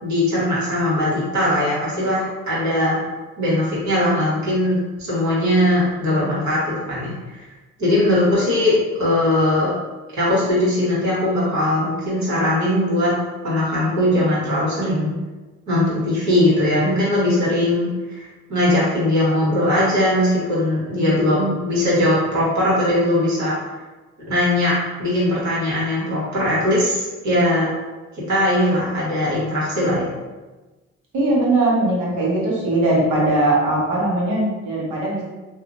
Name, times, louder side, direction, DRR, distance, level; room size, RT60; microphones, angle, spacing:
voice 1, 0.0-3.0 3.4-7.4 7.8-8.7 9.0-9.7 10.1-13.1 13.4-15.2 15.7-17.9 18.1-23.6 24.3-27.7 28.3-30.1, left 1 dB, 70° right, -8 dB, 1.5 m, -20 dB
voice 2, 31.1-35.2, right 2 dB, 90° right, -4 dB, 0.9 m, -20 dB
2.8 x 2.3 x 2.5 m, 1.2 s
cardioid pair, 90°, 30 cm